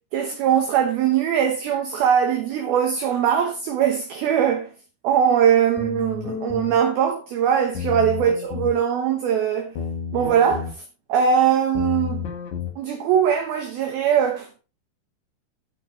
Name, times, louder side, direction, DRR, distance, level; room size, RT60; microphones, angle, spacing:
voice 1, 0.1-4.7 5.0-9.7 10.1-10.7 11.1-12.3 12.8-14.6, right 8 dB, 65° right, 2.6 m, -21 dB
sound 1, 5.8-6.7 7.7-8.8 9.8-10.7 11.7-12.7, left 7 dB, 50° left, 2.5 m, -31 dB
16.5 x 5.9 x 3.3 m
omnidirectional pair, 5.7 m